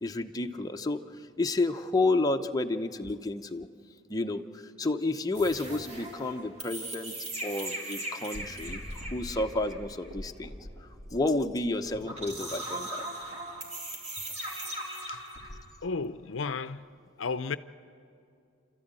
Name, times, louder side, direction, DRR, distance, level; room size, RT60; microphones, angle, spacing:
voice 1, 0.0-3.7 4.1-7.1 7.4-13.0, left 2 dB, 20° left, 0.7 m, -31 dB
sound 1, 5.3-15.6, right 1 dB, 35° right, 3.4 m, -39 dB
voice 2, 15.8-16.9 17.2-17.6, left 4 dB, 70° left, 0.6 m, -33 dB
29.5 x 13.0 x 8.9 m
head